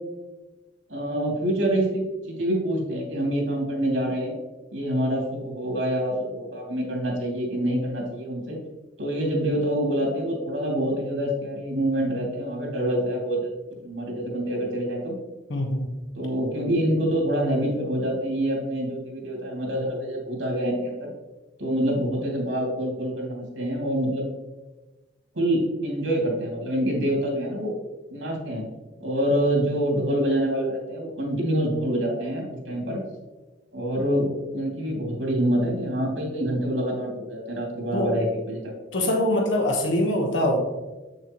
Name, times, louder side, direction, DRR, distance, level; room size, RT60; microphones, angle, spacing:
voice 1, 0.9-4.4 4.7-8.6 9.0-13.5 13.8-15.2 16.2-21.1 21.6-24.3 25.3-27.7 28.1-28.6 29.0-33.0 33.7-38.6, right 1 dB, 80° right, -1 dB, 2.4 m, -26 dB
voice 2, 15.5-15.9 37.9-38.1 38.9-40.6, left 1 dB, 85° left, 1 dB, 1.1 m, -23 dB
8.1 x 6.6 x 3.0 m, 1.2 s
head